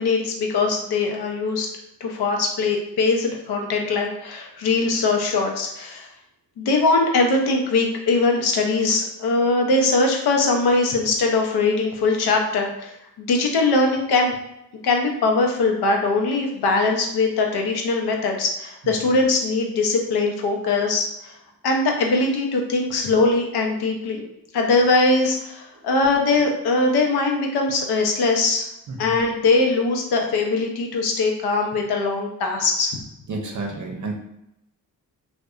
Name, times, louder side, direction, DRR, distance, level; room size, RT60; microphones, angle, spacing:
voice 1, 0.0-1.7 2.0-6.1 6.6-14.3 14.8-21.3 21.6-24.2 24.5-28.7 29.0-32.9, left 3 dB, 90° left, 2 dB, 0.6 m, -21 dB
voice 2, 33.3-34.1, right 3 dB, 50° right, 2 dB, 0.6 m, -30 dB
2.7 x 2.2 x 2.3 m, 0.83 s
cardioid pair, 60°, 38 cm